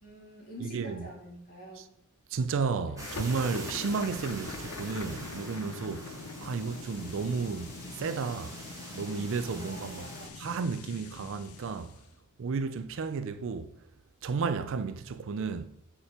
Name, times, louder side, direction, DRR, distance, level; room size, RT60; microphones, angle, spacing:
voice 1, 0.0-1.9 9.6-10.4, equal, 40° left, 2.6 m, -47 dB
voice 2, 0.6-1.1 1.8-1.9 2.3-8.6 8.9-10.1 10.4-11.9 12.4-13.7 14.2-15.7, right 5 dB, 60° right, 0.4 m, -33 dB
sound 1, 3.0-12.1, left 4 dB, 80° left, 0.6 m, -44 dB
sound 2, 3.0-10.3, right 2 dB, 15° right, 1.5 m, -45 dB
6.8 x 5.1 x 4.3 m
head